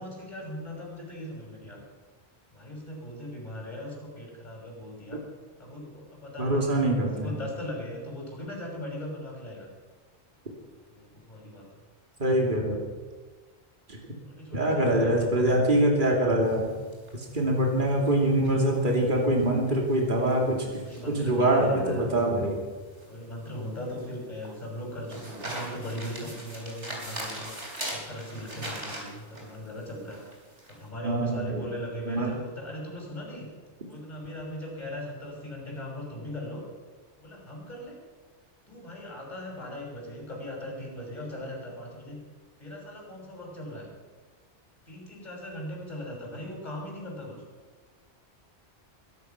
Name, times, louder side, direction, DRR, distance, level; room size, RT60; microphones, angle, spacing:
voice 1, 0.0-1.8 2.5-5.2 5.6-6.7 7.1-9.7 10.9-11.6 14.2-15.9 20.8-22.1 23.1-27.5 27.9-30.2 30.7-33.5 33.9-36.6 37.2-37.9 38.7-42.2 42.6-43.9 44.9-47.4, left 1 dB, 40° left, -2 dB, 6.2 m, -39 dB
voice 2, 6.4-7.3 12.2-12.8 13.9-14.0 14.5-16.7 17.1-22.6 31.0-31.7 32.1-32.3, right 1 dB, 45° right, 0 dB, 2.9 m, -24 dB
sound 1, 16.4-30.8, right 1 dB, 80° right, 4.3 m, -42 dB
21.5 x 11.5 x 5.9 m, 1.4 s
omnidirectional pair, 1.2 m